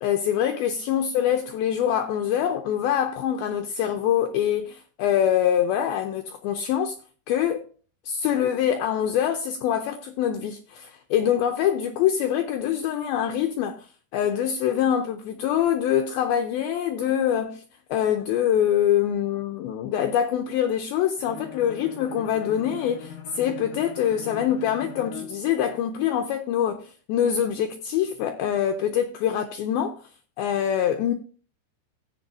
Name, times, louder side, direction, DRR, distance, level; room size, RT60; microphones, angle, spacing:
voice 1, 0.0-7.0 7.3-7.6 8.1-13.9 14.1-17.6 17.9-30.0 30.4-31.1, left 9 dB, 90° left, 2.1 m, -24 dB
Bowed string instrument, 21.2-25.4, left 8 dB, 60° left, 2.8 m, -41 dB
14.5 x 8.1 x 2.6 m
omnidirectional pair, 5.1 m